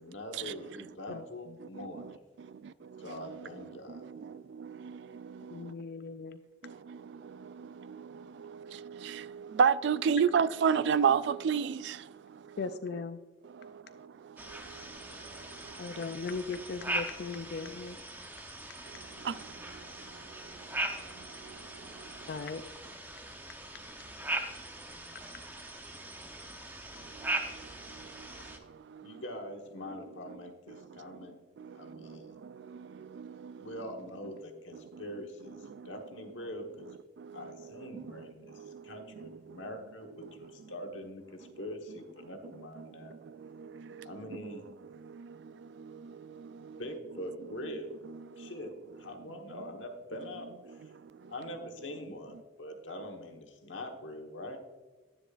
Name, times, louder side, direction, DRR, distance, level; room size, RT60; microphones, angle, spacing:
voice 1, 0.0-2.2 3.0-4.0 29.0-31.4 31.7-32.3 33.6-36.9 37.3-43.2 44.0-44.7 46.8-47.9 48.4-48.7 49.0-50.8 51.3-54.6, left 1 dB, 90° left, 1.3 m, -43 dB
voice 2, 1.8-2.1 2.4-3.4 3.9-5.7 6.6-12.6 13.4-16.0 18.9-22.3 27.0-29.2 30.7-31.2 31.6-33.7 34.9-35.0 35.7-35.9 37.2-37.8 38.5-39.6 40.4-40.5 42.8-44.5 45.0-46.8 48.3-48.5 51.0-51.3, right 6 dB, 65° right, 0.3 m, -35 dB
voice 3, 5.5-6.4 12.6-13.2 15.8-18.0 22.3-22.6, left 4 dB, 55° left, 0.4 m, -38 dB
sound 1, 14.4-28.6, right 2 dB, 10° right, 0.8 m, -40 dB
10.0 x 10.0 x 2.5 m
head